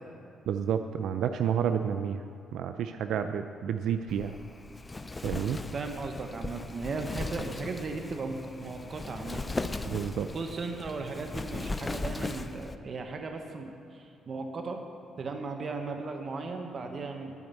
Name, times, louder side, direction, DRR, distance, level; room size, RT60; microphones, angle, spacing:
voice 1, 0.5-2.2 2.5-4.3 5.2-5.6 9.8-10.3, right 8 dB, 75° right, 9 dB, 0.4 m, -30 dB
Wind, 4.1-12.8, left 2 dB, 20° left, 0.5 m, -38 dB
voice 2, 5.7-9.4 10.3-14.8 15.2-17.3, right 3 dB, 45° right, 4 dB, 1.0 m, -36 dB
11.0 x 5.3 x 8.3 m, 2.6 s
cardioid pair, 90°, 0 cm